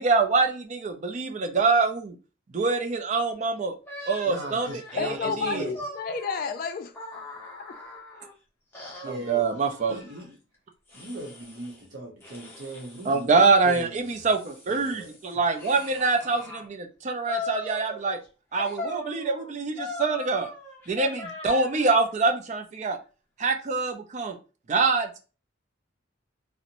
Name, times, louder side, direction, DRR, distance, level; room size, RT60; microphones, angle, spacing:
voice 1, 0.0-2.1 2.5-3.7 4.1-4.7 4.9-5.7 9.1-9.9 13.1-18.2 18.5-20.5 20.9-23.0 23.4-24.4 24.7-25.2, right 4 dB, 35° right, 0.4 m, -25 dB
sound 1, 3.9-8.3 8.7-10.3 10.9-11.8 12.2-13.2 13.8-16.7 17.3-18.3 18.6-22.0, left 2 dB, 10° left, 0.6 m, -40 dB
voice 2, 4.2-5.8 9.0-9.5 9.9-10.4 10.9-14.3 14.6-15.2, right 1 dB, 65° right, 0.8 m, -39 dB
voice 3, 5.0-6.9 7.7-7.8, left 5 dB, 45° left, 0.3 m, -30 dB
2.5 x 2.0 x 2.8 m
head